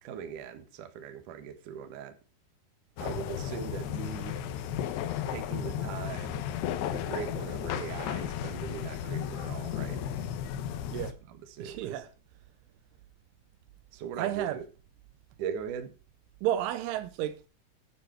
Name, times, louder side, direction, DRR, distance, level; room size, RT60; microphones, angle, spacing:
voice 1, 0.0-2.1 3.0-4.5 5.3-6.4 6.9-10.0 11.3-12.0 13.9-14.6 15.4-15.9, right 8 dB, 60° right, 2.2 m, -40 dB
sound 1, 3.0-11.1, left 9 dB, 80° left, 2.5 m, -34 dB
voice 2, 11.6-12.1 14.2-14.6 16.4-17.5, right 12 dB, 80° right, 3.2 m, -32 dB
11.0 x 10.0 x 4.6 m
omnidirectional pair, 5.7 m